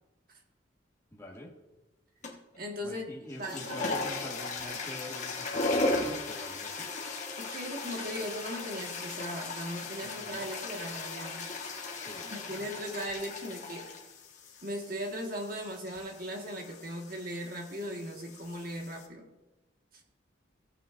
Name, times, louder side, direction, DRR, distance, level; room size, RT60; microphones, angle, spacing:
voice 1, 1.1-1.5 2.8-6.9 10.0-10.5 12.0-12.3, left 1 dB, 15° left, -1 dB, 1.6 m, -46 dB
sound 1, 2.2-2.6 3.2-19.1, left 2 dB, 35° left, 1.4 m, -37 dB
voice 2, 2.6-3.1 3.4-3.8 7.4-11.5 12.2-13.9 14.6-19.3, equal, 45° right, 2 dB, 1.6 m, -38 dB
16.5 x 9.1 x 2.6 m, 1.0 s
head